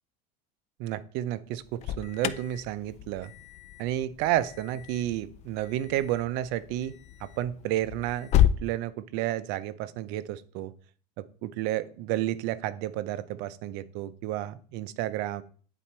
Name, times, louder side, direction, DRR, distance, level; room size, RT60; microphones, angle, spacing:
voice 1, 0.8-3.3 3.8-6.9 7.2-8.3 8.6-10.7 11.4-15.4, right 13 dB, 60° right, 14 dB, 0.6 m, -31 dB
Alarm, 1.5-8.6, left 11 dB, 35° left, 0.4 m, -31 dB
9.1 x 4.2 x 4.5 m, 0.44 s
supercardioid pair, 140°, 20 cm